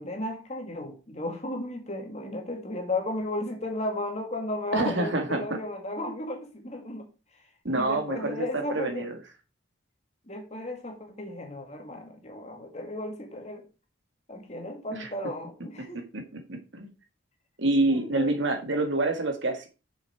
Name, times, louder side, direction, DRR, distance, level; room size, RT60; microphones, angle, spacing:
voice 1, 0.0-7.1 7.7-9.1 10.3-13.7 14.3-16.0 17.9-18.5, left 1 dB, 35° left, 1.9 m, -34 dB
voice 2, 4.7-5.4 7.6-9.1 14.9-15.1 16.1-16.2 16.5-16.9 17.6-19.7, right 2 dB, 65° right, 1.7 m, -27 dB
7.0 x 6.5 x 4.5 m
head